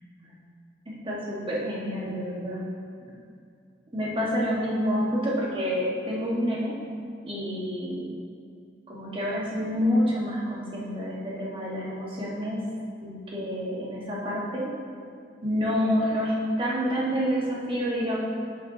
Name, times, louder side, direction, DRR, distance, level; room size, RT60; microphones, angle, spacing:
voice 1, 0.8-2.6 3.1-3.2 3.9-6.8 7.3-8.1 8.9-12.6 13.0-14.7 15.4-18.2, equal, 30° right, -5 dB, 1.3 m, -28 dB
8.4 x 7.8 x 2.7 m, 2.4 s
head